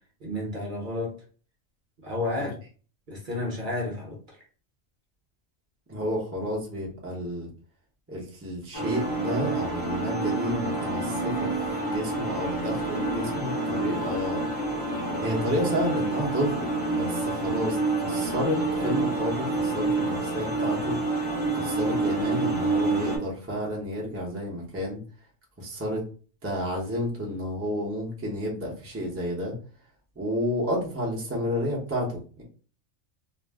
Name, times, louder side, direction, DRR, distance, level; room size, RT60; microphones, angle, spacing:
voice 1, 0.2-1.2 2.0-2.6 3.1-4.4, left 2 dB, 45° right, 0.8 m, -31 dB
voice 2, 5.9-7.5 8.1-14.4 15.2-25.0 25.6-26.0 26.4-29.6 30.1-32.4, equal, 15° right, 0.5 m, -31 dB
sound 1, 8.7-23.2, right 2 dB, 20° left, 0.7 m, -28 dB
2.5 x 2.0 x 3.4 m
omnidirectional pair, 1.4 m